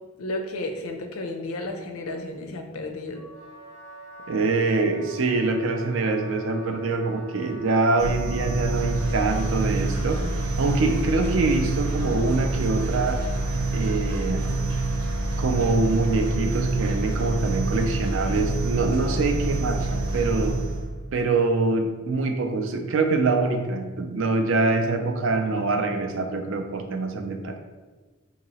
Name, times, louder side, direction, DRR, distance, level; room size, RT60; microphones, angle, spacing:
voice 1, 0.2-3.2, left 2 dB, 70° left, 4 dB, 0.5 m, -32 dB
Wind instrument woodwind instrument, 3.1-9.6, right 1 dB, 5° right, 0.7 m, -44 dB
voice 2, 4.3-10.3 10.6-13.2 13.7-14.5 15.4-20.6 21.1-27.5, right 3 dB, 60° right, 5 dB, 0.4 m, -24 dB
sound 1, 8.0-21.0, right 2 dB, 80° right, 1.0 m, -27 dB
2.9 x 2.8 x 4.1 m, 1.3 s
head